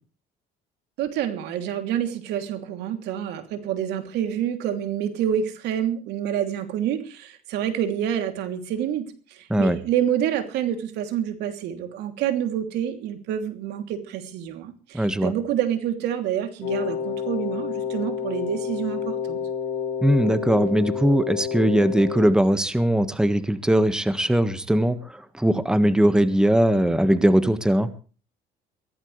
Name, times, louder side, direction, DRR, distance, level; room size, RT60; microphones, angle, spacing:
voice 1, 1.0-19.4, right 10 dB, 85° right, 6 dB, 3.1 m, -27 dB
voice 2, 14.9-15.3 20.0-27.9, right 1 dB, 5° right, 10 dB, 1.6 m, -20 dB
Wind instrument woodwind instrument, 16.6-22.3, left 7 dB, 65° left, 7.4 m, -29 dB
23.0 x 16.5 x 3.3 m, 0.39 s
cardioid pair, 110°, 17 cm